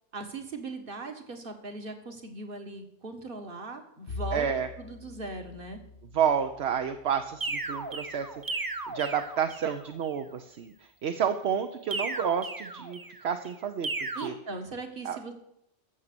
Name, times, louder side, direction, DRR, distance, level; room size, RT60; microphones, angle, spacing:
voice 1, 0.1-4.5 4.8-5.8 14.2-15.3, right 3 dB, 50° right, 5 dB, 1.7 m, -39 dB
Bowed string instrument, 4.1-8.7, left 3 dB, 65° left, 1.1 m, -44 dB
voice 2, 4.3-4.7 6.1-14.3 15.0-15.2, right 8 dB, 70° right, 7 dB, 1.0 m, -30 dB
sound 1, 7.4-9.8 11.9-13.3 13.8-14.3, right 3 dB, 20° right, 0.7 m, -35 dB
14.0 x 7.2 x 6.8 m, 0.79 s
omnidirectional pair, 1.2 m